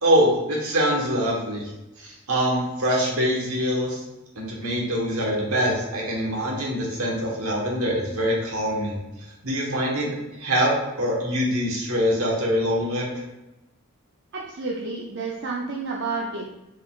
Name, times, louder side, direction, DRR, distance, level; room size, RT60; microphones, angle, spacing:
voice 1, 0.0-1.6 2.0-4.0 4.4-9.0 9.4-10.1 10.4-10.7 11.0-13.1, equal, 70° right, -2 dB, 1.2 m, -24 dB
voice 2, 14.3-16.5, right 3 dB, 50° right, -2 dB, 0.4 m, -30 dB
4.6 x 3.8 x 2.3 m, 0.98 s
head